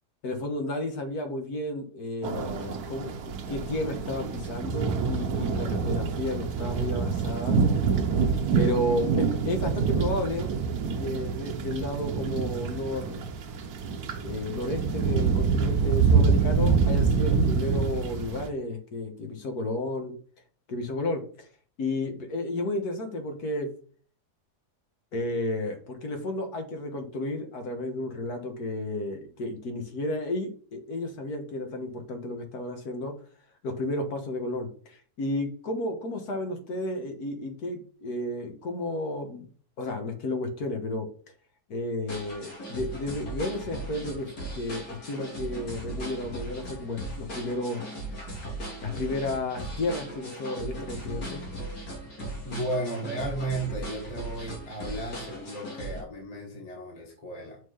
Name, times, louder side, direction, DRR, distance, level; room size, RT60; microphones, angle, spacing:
voice 1, 0.2-7.6 8.6-10.5 10.8-13.2 14.2-20.1 20.7-21.5 21.8-23.7 25.1-33.1 33.6-39.5 39.8-41.1 41.7-47.8 48.8-51.4, left 1 dB, 70° left, 5 dB, 1.9 m, -32 dB
sound 1, 2.2-18.5, right 5 dB, 70° right, 1.4 m, -26 dB
sound 2, 42.1-56.0, right 1 dB, 85° left, 3.0 m, -38 dB
voice 2, 52.4-57.6, right 1 dB, 25° left, -2 dB, 1.6 m, -34 dB
6.3 x 3.8 x 5.6 m, 0.43 s
omnidirectional pair, 1.7 m